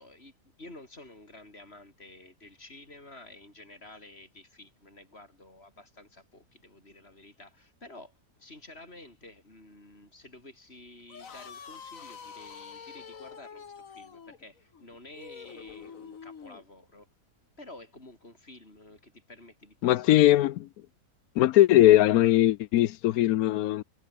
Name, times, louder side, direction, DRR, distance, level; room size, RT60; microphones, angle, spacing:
voice 1, 0.0-17.1 17.6-20.5, left 2 dB, 40° left, 7.4 m, -51 dB
sound 1, 11.0-16.6, left 6 dB, 60° left, 1.9 m, -46 dB
voice 2, 19.8-20.5 21.4-23.8, left 14 dB, 75° left, 1.0 m, -20 dB
omnidirectional pair, 1.6 m